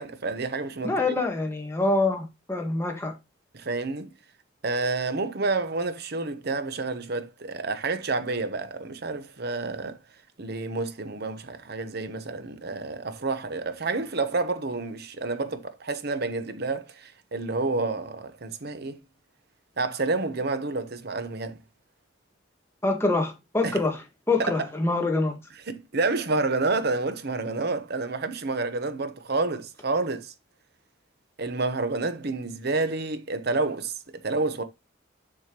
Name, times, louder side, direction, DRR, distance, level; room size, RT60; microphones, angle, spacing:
voice 1, 0.0-1.0 3.5-4.1 4.6-10.0 10.4-19.0 19.8-21.6 23.6-23.8 24.4-24.5 25.7-30.3 31.4-34.6, right 3 dB, 55° right, 0.9 m, -29 dB
voice 2, 0.8-3.1 22.8-25.4, left 2 dB, 10° left, 1.6 m, -25 dB
7.4 x 5.7 x 3.0 m
head